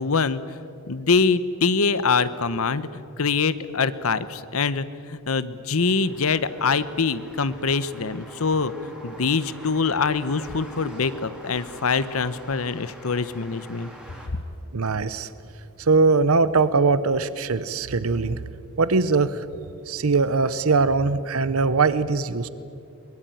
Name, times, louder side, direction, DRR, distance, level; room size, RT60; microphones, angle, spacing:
voice 1, 0.0-13.9, left 4 dB, 70° left, 14 dB, 0.9 m, -24 dB
sound 1, 5.7-14.3, equal, 5° right, 3.5 m, -45 dB
sound 2, 6.3-11.9, equal, 90° left, 4.7 m, -50 dB
voice 2, 14.7-15.3 15.8-18.4 18.8-19.4 19.9-22.5, right 4 dB, 70° right, 15 dB, 0.8 m, -21 dB
23.5 x 21.0 x 9.2 m, 2.6 s
head